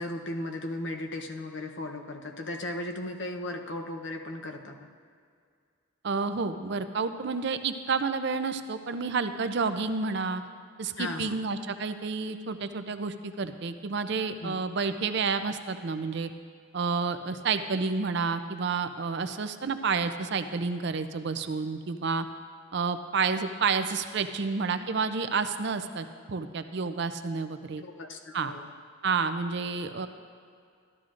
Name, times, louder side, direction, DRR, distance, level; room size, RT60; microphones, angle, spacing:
voice 1, 0.0-4.9 11.0-11.4 14.4-14.6 27.8-28.6, left 1 dB, 60° left, 4 dB, 0.8 m, -36 dB
voice 2, 6.0-10.4 10.8-16.3 16.7-22.3 22.7-27.8 28.3-28.5 29.0-30.1, right 4 dB, 55° right, 10 dB, 0.5 m, -30 dB
13.0 x 12.5 x 2.5 m, 2.2 s
head